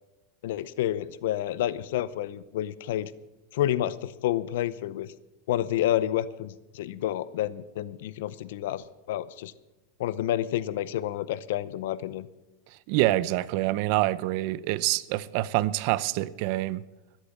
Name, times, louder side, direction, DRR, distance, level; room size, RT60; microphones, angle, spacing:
voice 1, 0.4-3.1 3.5-5.1 5.5-9.5 10.0-12.3, left 12 dB, 75° left, 0.7 m, -29 dB
voice 2, 12.9-16.8, right 17 dB, 50° right, 0.6 m, -26 dB
13.0 x 10.5 x 7.2 m
supercardioid pair, 155°, 0 cm